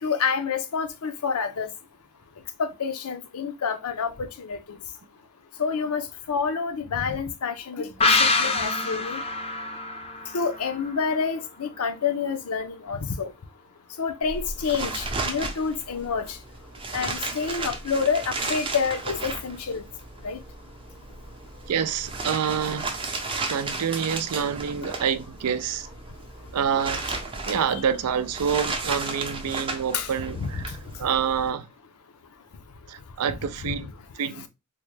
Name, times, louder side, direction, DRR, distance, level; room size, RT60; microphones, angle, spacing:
voice 1, 0.0-1.7 2.6-4.8 5.6-9.2 10.3-13.3 14.0-16.4 16.9-19.8 20.2-20.4 29.9-30.1 30.4-30.6 33.6-33.7, left 5 dB, 75° left, 0.6 m, -28 dB
sound 1, 8.0-11.5 11.8-11.9, left 3 dB, 25° left, 0.5 m, -25 dB
sound 2, 14.2-31.5, right 3 dB, 25° right, 0.6 m, -34 dB
voice 2, 21.7-22.9 23.5-25.9 26.5-27.1 27.5-30.6 31.0-31.7 32.9-34.5, right 7 dB, 85° right, 0.4 m, -27 dB
3.6 x 2.1 x 3.1 m
head